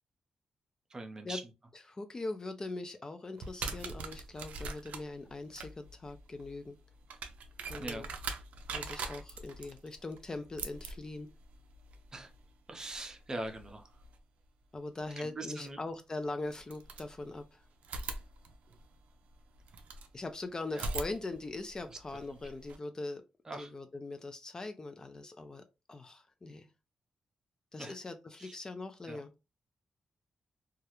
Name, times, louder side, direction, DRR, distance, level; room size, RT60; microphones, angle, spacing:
voice 1, 0.9-1.4 7.8-8.1 12.1-12.3 12.7-13.9 15.2-15.8 20.7-20.9 21.9-22.0 22.3-22.4 23.4-23.7 27.8-28.0 28.4-28.6 29.1-29.3, right 2 dB, 30° right, 0.5 m, -42 dB
voice 2, 1.9-6.8 7.7-8.1 8.7-11.3 14.7-17.6 20.1-23.2 23.6-26.7 27.7-29.3, left 2 dB, 30° left, 0.3 m, -41 dB
sound 1, 3.4-14.2 15.7-15.8 16.5-17.5 17.8-20.1 20.7-22.8, right 4 dB, 80° right, 0.4 m, -43 dB
2.3 x 2.0 x 2.8 m
cardioid pair, 90°, 2 cm